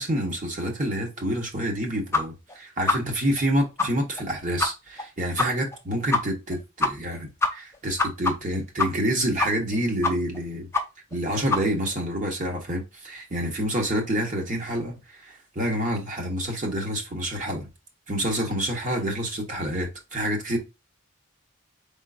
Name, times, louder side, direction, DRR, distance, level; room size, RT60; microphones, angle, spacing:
voice 1, 0.0-10.7 11.1-17.7 18.1-20.6, right 1 dB, 40° right, 1.1 m, -28 dB
sound 1, 2.1-2.2 2.5-2.6 2.9-3.0 3.4-3.5 3.8-3.9 4.2-4.3 4.6-4.7 5.0-5.1 5.4-5.5 5.7-5.8 6.1-6.2 6.5-6.6 6.8-7.2 7.4-9.1 9.4-9.7 10.0-10.4 10.7-10.8 11.1-11.2 11.5-11.6, left 3 dB, 10° left, 0.5 m, -23 dB
4.4 x 3.6 x 2.6 m
head